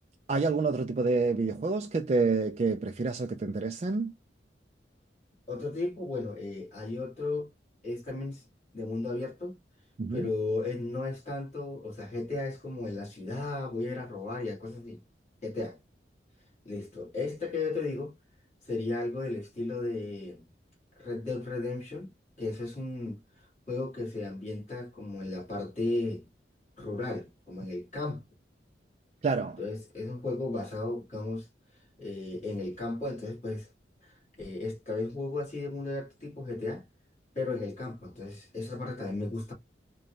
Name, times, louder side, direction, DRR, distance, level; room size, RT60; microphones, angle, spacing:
voice 1, 0.3-4.1 10.0-10.3 29.2-29.6, right 4 dB, 35° right, 0.3 m, -28 dB
voice 2, 5.5-7.5 7.8-8.4 8.7-9.6 10.1-15.0 15.4-15.8 16.6-18.1 18.6-20.5 21.0-22.1 22.4-26.3 26.8-28.2 29.6-31.5 32.0-33.7 34.0-36.8 37.3-39.5, left 2 dB, 40° left, 1.8 m, -35 dB
3.8 x 2.2 x 3.1 m
head